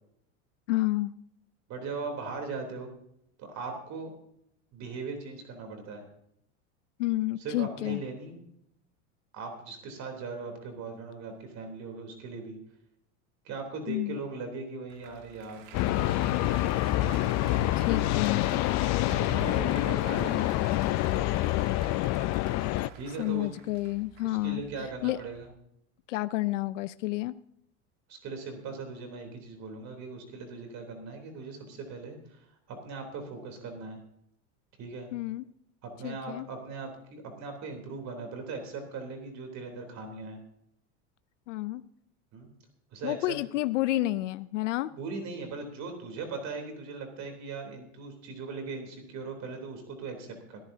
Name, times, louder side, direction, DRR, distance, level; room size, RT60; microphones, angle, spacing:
voice 1, 0.7-1.1 7.0-8.0 13.9-14.2 17.8-18.5 23.2-24.6 25.0-25.2 26.1-27.3 35.1-35.4 36.0-36.5 41.5-41.8 43.0-44.9, left 18 dB, 85° left, 14 dB, 0.6 m, -30 dB
voice 2, 1.7-2.9 3.4-4.1 4.7-6.0 7.4-8.4 9.3-12.6 13.4-16.3 19.2-20.6 22.9-23.5 24.2-25.5 28.1-34.0 34.8-35.1 35.8-40.4 42.3-42.5 42.9-43.4 44.8-50.6, right 4 dB, 50° right, 4 dB, 3.5 m, -39 dB
Applause, 14.9-25.5, right 8 dB, 75° right, 2.5 m, -48 dB
sound 1, 15.7-22.9, left 16 dB, 50° left, 0.6 m, -27 dB
sound 2, 19.1-21.1, left 3 dB, 20° left, 1.3 m, -43 dB
21.0 x 14.0 x 2.8 m, 0.73 s
supercardioid pair, 105°, 36 cm